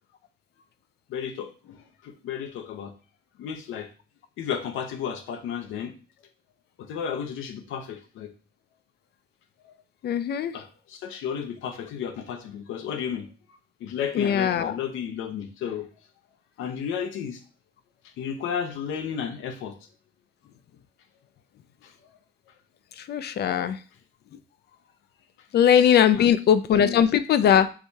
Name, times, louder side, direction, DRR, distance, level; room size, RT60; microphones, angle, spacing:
voice 1, 1.1-2.9 3.4-3.9 4.4-5.9 6.8-8.3 10.5-13.3 13.8-15.9 16.6-17.4 18.2-19.8 21.8-21.9 26.1-26.3 26.8-27.0, left 8 dB, 85° left, 7 dB, 0.7 m, -33 dB
voice 2, 10.0-10.6 14.1-14.8 23.0-23.8 25.5-27.7, left 9 dB, 55° left, 13 dB, 0.4 m, -20 dB
4.7 x 3.4 x 2.8 m, 0.36 s
cardioid pair, 90°, 20 cm